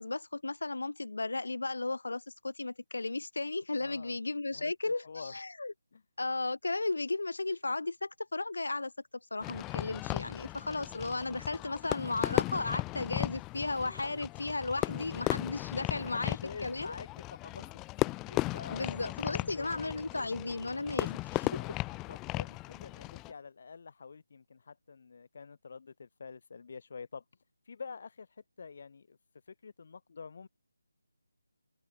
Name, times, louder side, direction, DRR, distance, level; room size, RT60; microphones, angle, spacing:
voice 1, 0.0-5.7 6.2-8.9 9.3-16.4 16.6-16.9 18.7-21.6, left 3 dB, 65° left, 1.8 m, -35 dB
voice 2, 3.8-4.2 4.5-5.4 5.9-6.0 10.7-10.8 14.8-15.1 16.0-19.8 21.4-27.2 27.6-29.2 29.5-30.5, left 5 dB, 45° left, 1.2 m, -48 dB
Fireworks, 9.4-23.3, left 21 dB, 15° left, 0.5 m, -36 dB
open air
figure-of-eight pair, 155°, 0 cm